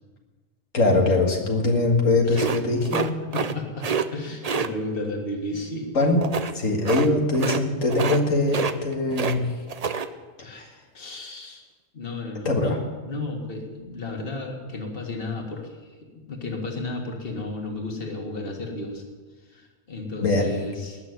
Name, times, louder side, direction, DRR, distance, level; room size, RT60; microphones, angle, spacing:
voice 1, 0.7-3.2 5.9-6.2 6.5-9.5 12.4-12.8 20.2-20.5, left 2 dB, 85° left, 1 dB, 2.3 m, -22 dB
sound 1, 2.3-3.5 3.8-4.1 4.4-4.7 6.2-6.5 6.8-7.1 7.3-7.6 7.9-8.2 8.5-9.4 9.7-10.1, right 5 dB, 40° right, 0.6 m, -27 dB
voice 2, 3.3-5.9 10.4-10.7 10.9-11.6 11.9-19.1 19.5-21.0, left 2 dB, 45° left, 1 dB, 2.2 m, -33 dB
19.5 x 6.7 x 9.5 m, 1.4 s
omnidirectional pair, 1.3 m